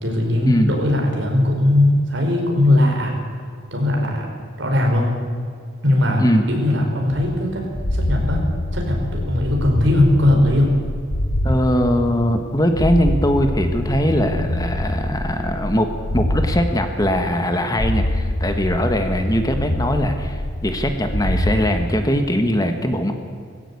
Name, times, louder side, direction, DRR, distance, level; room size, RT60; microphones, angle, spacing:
voice 1, 0.0-3.1 3.7-4.3 4.6-5.2 5.8-7.6 7.9-8.4 8.7-10.7, left 1 dB, 60° right, 1 dB, 5.1 m, -19 dB
sound 1, 7.1-11.6 11.9-16.6 16.9-17.5 17.7-21.6, left 1 dB, 75° left, 2.0 m, -25 dB
voice 2, 11.4-23.1, equal, 20° left, 6 dB, 1.4 m, -21 dB
19.0 x 16.5 x 8.5 m, 2.1 s
head